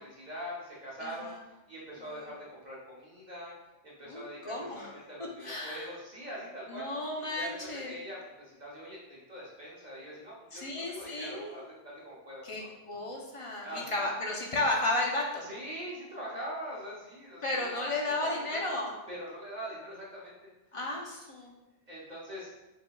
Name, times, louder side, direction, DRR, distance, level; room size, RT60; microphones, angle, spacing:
voice 1, 0.0-3.5 3.8-6.9 7.3-12.7 13.6-14.1 15.4-18.6 19.1-20.5 21.9-22.5, equal, 45° right, -6 dB, 1.1 m, -43 dB
voice 2, 1.0-1.4 2.0-2.3 4.1-4.9 5.4-5.9 6.7-8.0 10.5-11.6 12.4-15.5 17.4-18.9 20.7-21.5, left 2 dB, 35° left, -1 dB, 0.7 m, -33 dB
4.8 x 3.9 x 2.3 m, 1.0 s
omnidirectional pair, 1.0 m